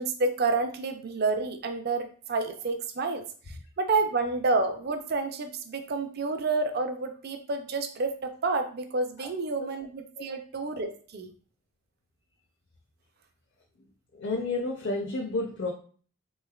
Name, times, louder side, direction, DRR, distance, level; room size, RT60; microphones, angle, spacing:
voice 1, 0.0-3.2 3.8-11.3, right 3 dB, 45° right, 8 dB, 0.4 m, -29 dB
voice 2, 14.1-15.7, left 2 dB, 50° left, 0 dB, 0.5 m, -31 dB
3.6 x 3.1 x 2.3 m, 0.43 s
head